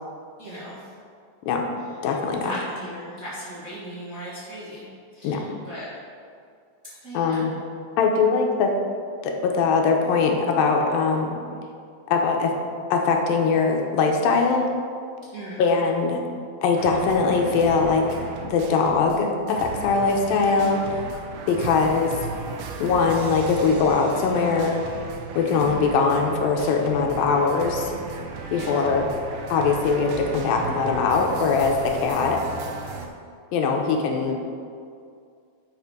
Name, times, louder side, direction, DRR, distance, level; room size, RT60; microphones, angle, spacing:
voice 1, 0.4-0.8 2.3-5.9 6.8-7.5 15.3-15.6 28.4-29.0, equal, 35° right, -10 dB, 1.4 m, -38 dB
voice 2, 2.0-2.6 5.2-5.4 7.1-7.5 8.0-8.7 9.2-11.4 12.1-12.5 12.9-14.7 15.6-16.2 16.6-18.1 18.4-20.8 21.5-22.2 22.8-24.8 25.4-27.9 28.5-29.1 29.5-32.4 33.5-34.4, left 4 dB, 85° left, 2 dB, 2.5 m, -21 dB
sound 1, 16.8-19.2 19.5-33.1, right 4 dB, 85° right, 2.6 m, -36 dB
11.0 x 4.4 x 4.8 m, 2.3 s
omnidirectional pair, 4.1 m